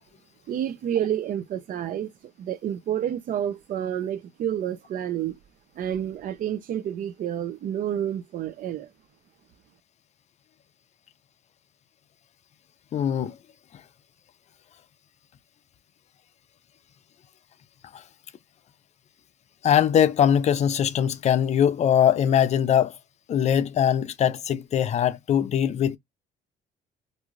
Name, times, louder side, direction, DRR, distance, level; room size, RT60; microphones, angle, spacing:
voice 1, 0.5-2.1 2.4-5.4 5.8-8.9, right 10 dB, 55° right, 0.5 m, -29 dB
voice 2, 12.9-13.3 17.9-18.0 19.6-22.9 23.3-26.0, left 9 dB, 40° left, 0.4 m, -21 dB
2.6 x 2.3 x 3.1 m
cardioid pair, 110°, 17 cm